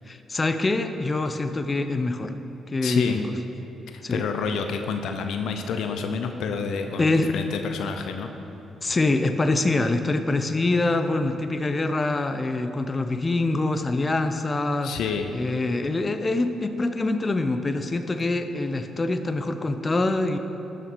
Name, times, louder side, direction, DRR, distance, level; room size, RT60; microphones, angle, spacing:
voice 1, 0.1-2.3 2.7-3.3 4.0-4.3 7.0-7.3 8.8-14.9 15.3-20.4, left 2 dB, 35° left, 8 dB, 0.6 m, -25 dB
voice 2, 2.8-3.2 3.9-8.3 14.8-15.3, left 5 dB, 70° left, 6 dB, 0.6 m, -29 dB
12.0 x 6.8 x 4.6 m, 3.0 s
hypercardioid pair, 45°, 0 cm